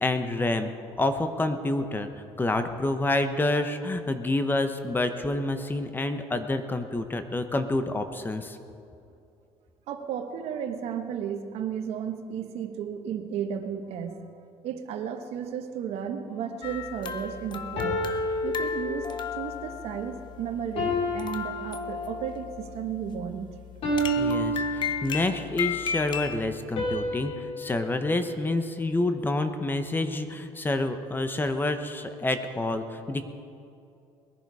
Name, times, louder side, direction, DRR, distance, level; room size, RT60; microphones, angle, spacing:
voice 1, 0.0-0.7 1.0-2.1 2.4-8.6 24.2-33.3, left 2 dB, 20° left, 8 dB, 1.0 m, -28 dB
voice 2, 9.9-14.2 14.6-18.1 18.4-23.5, right 8 dB, 70° right, 6 dB, 1.3 m, -34 dB
sound 1, 16.3-16.6 17.8-19.4 20.8-22.4 23.8-25.4 26.8-29.2, equal, 60° left, 3.8 m, -31 dB
sound 2, 16.6-26.6, left 7 dB, 45° left, 0.9 m, -35 dB
20.5 x 11.0 x 4.8 m, 2.6 s
cardioid pair, 105°, 11 cm